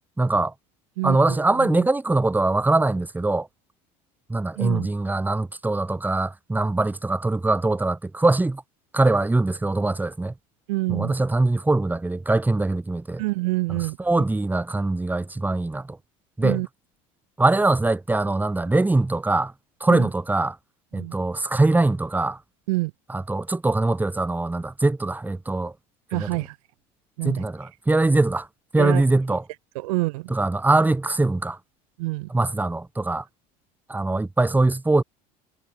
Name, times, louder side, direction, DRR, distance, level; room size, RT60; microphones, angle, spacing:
voice 1, 0.2-0.5 1.0-3.5 4.3-8.6 8.9-10.3 10.9-13.2 14.0-16.0 16.4-16.6 17.4-19.5 19.8-20.6 20.9-22.4 23.1-25.7 26.1-26.3 27.2-28.5 28.7-29.4 30.3-31.6 32.3-33.2 33.9-35.0, right 2 dB, 10° right, 2.5 m, -22 dB
voice 2, 1.0-1.9 4.6-4.9 10.7-11.2 13.2-14.2 16.4-16.7 19.9-20.1 20.9-21.1 22.7-22.9 26.1-26.6 27.2-27.4 28.8-29.0 29.7-30.3 32.0-32.3, right 22 dB, 85° right, 2.2 m, -27 dB
supercardioid pair, 105°, 18 cm